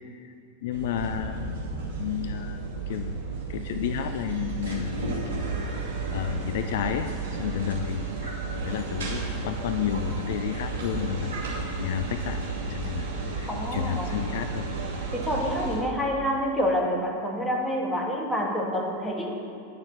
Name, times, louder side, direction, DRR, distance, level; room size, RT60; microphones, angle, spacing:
voice 1, 0.6-1.6 2.0-2.6 2.9-3.1 3.5-5.4 6.1-7.1 7.4-8.4 8.7-11.3 11.8-12.4 12.7-13.1 13.4-14.7 15.0-15.1, left 10 dB, 55° left, 8 dB, 0.4 m, -31 dB
sound 1, 0.7-15.8, right 3 dB, 60° right, 2.4 m, -33 dB
voice 2, 13.5-14.1 15.1-19.3, equal, 5° left, -1 dB, 1.6 m, -27 dB
9.5 x 6.5 x 7.7 m, 2.7 s
figure-of-eight pair, 90°, 0 cm